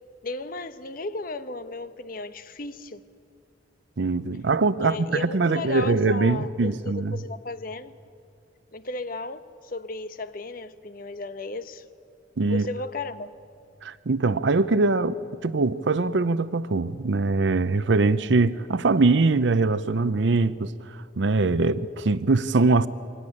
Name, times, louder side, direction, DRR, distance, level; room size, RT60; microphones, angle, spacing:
voice 1, 0.2-3.0 4.8-6.7 7.1-7.9 8.7-11.8 12.5-13.3, left 3 dB, 50° left, 0.9 m, -35 dB
voice 2, 4.0-7.2 12.4-12.7 13.8-20.7 21.2-22.9, right 3 dB, 70° right, 0.6 m, -22 dB
24.0 x 17.0 x 9.9 m
head